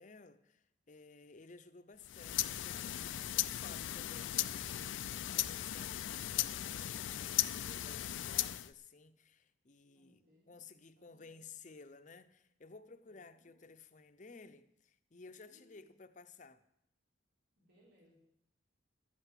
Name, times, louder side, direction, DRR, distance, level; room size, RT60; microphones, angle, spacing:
voice 1, 0.0-16.6, left 4 dB, 40° left, 0.7 m, -56 dB
sound 1, 2.0-8.7, left 13 dB, 75° left, 0.4 m, -37 dB
voice 2, 9.9-10.6 11.0-11.4 13.0-13.7 15.5-15.9 17.6-18.2, equal, 70° right, 4.2 m, -69 dB
11.5 x 8.1 x 7.4 m
head